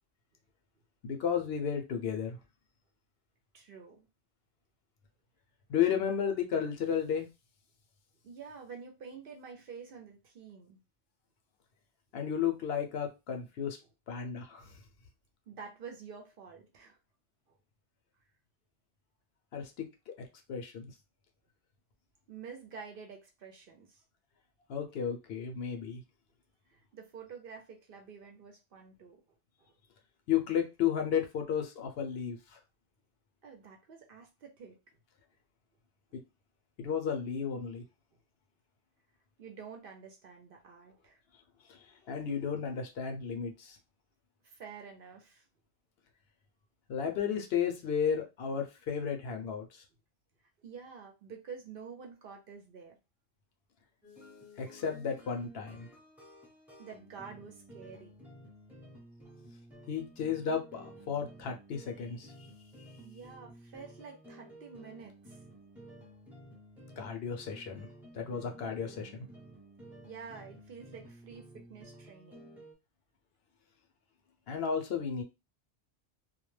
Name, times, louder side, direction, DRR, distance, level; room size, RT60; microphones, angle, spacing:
voice 1, 1.0-2.4 5.7-7.3 12.1-13.8 14.1-14.7 19.5-19.9 20.2-20.9 24.7-26.0 30.3-32.6 36.1-36.2 36.8-37.8 41.7-43.8 46.9-49.8 54.6-55.9 59.9-62.3 67.0-67.9 68.1-69.3 74.5-75.2, left 7 dB, 65° left, 3 dB, 0.7 m, -33 dB
voice 2, 3.5-4.1 8.2-10.8 15.5-17.0 17.5-17.6 22.3-24.0 26.7-29.2 29.6-29.8 33.4-34.8 39.4-41.2 44.4-45.5 50.6-53.0 56.8-58.1 63.0-65.4 70.0-72.5, right 6 dB, 60° right, 2 dB, 0.7 m, -48 dB
sound 1, 54.0-72.7, right 1 dB, ahead, 0.7 m, -53 dB
2.2 x 2.1 x 3.1 m, 0.26 s
omnidirectional pair, 1.2 m